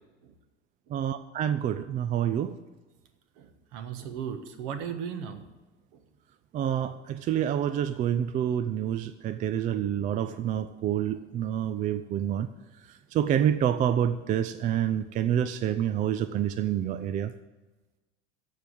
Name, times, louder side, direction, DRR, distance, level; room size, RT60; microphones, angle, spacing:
voice 1, 0.9-2.5 6.5-12.5 13.1-17.3, right 10 dB, 25° right, 12 dB, 0.4 m, -27 dB
voice 2, 3.4-5.4, right 7 dB, 50° right, 9 dB, 1.4 m, -36 dB
14.0 x 5.5 x 7.9 m, 1.2 s
figure-of-eight pair, 75°, 36 cm